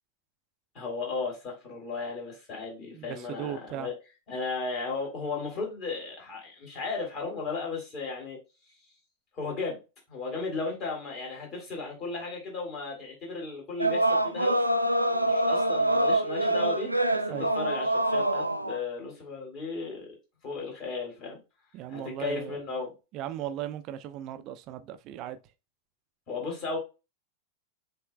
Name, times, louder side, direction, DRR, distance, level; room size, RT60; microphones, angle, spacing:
voice 1, 0.7-3.9 4.3-8.4 9.3-9.8 10.1-14.6 15.0-20.1 20.4-21.4 21.9-22.9 26.3-26.8, left 4 dB, 35° left, 2.9 m, -35 dB
voice 2, 2.9-3.9 17.3-17.5 21.7-22.6 23.1-25.4, right 10 dB, 40° right, 0.5 m, -37 dB
sound 1, 13.8-18.8, right 1 dB, 90° right, 0.4 m, -25 dB
7.6 x 3.1 x 2.3 m
figure-of-eight pair, 90°, 0 cm